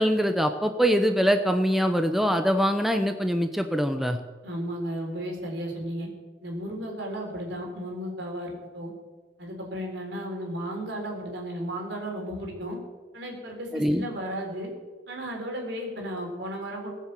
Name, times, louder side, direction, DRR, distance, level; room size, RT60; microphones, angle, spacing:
voice 1, 0.0-4.2 13.7-14.0, equal, ahead, 6 dB, 0.7 m, -23 dB
voice 2, 4.4-6.1 6.4-8.9 9.4-12.8 13.1-14.7 15.1-16.9, equal, 70° right, 1 dB, 4.1 m, -34 dB
19.0 x 7.4 x 7.7 m, 1.4 s
head